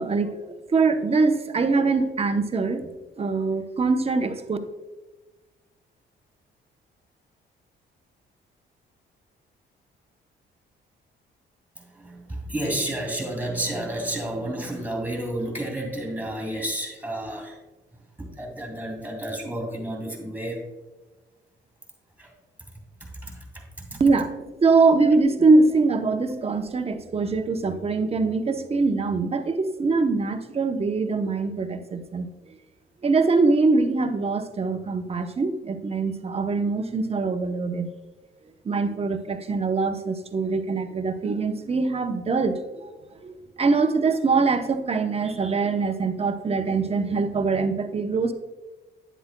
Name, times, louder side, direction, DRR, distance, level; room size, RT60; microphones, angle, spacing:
voice 1, 0.0-4.6 24.0-32.3 33.0-37.9 38.6-42.9 43.2-48.3, right 3 dB, 30° right, 7 dB, 0.8 m, -23 dB
voice 2, 11.8-17.6 18.2-20.6 22.2-22.3 23.0-23.5 23.9-24.0, right 1 dB, 10° right, 2 dB, 2.5 m, -31 dB
10.0 x 7.9 x 2.2 m, 1.2 s
cardioid pair, 90°, 20 cm